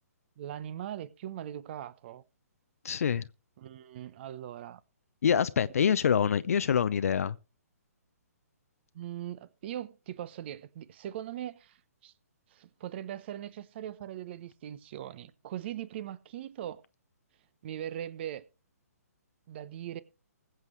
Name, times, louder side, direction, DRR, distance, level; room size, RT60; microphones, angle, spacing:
voice 1, 0.4-2.2 3.6-4.8 8.9-12.1 12.5-16.8 17.6-18.4 19.5-20.0, right 11 dB, 40° right, 1.0 m, -40 dB
voice 2, 2.8-3.3 5.2-7.4, left 7 dB, 60° left, 0.6 m, -26 dB
21.0 x 8.0 x 3.2 m
figure-of-eight pair, 135°, 9 cm